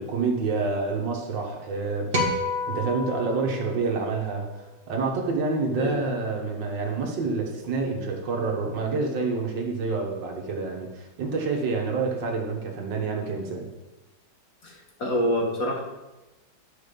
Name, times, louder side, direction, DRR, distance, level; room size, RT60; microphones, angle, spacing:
voice 1, 0.0-2.3 2.7-4.5 4.9-13.7, right 4 dB, 80° right, 1 dB, 2.0 m, -28 dB
sound 1, 2.1-4.6, left 2 dB, 35° right, 1.4 m, -30 dB
voice 2, 14.6-15.8, equal, 50° left, 0 dB, 1.8 m, -26 dB
10.5 x 5.0 x 5.2 m, 1.1 s
omnidirectional pair, 1.9 m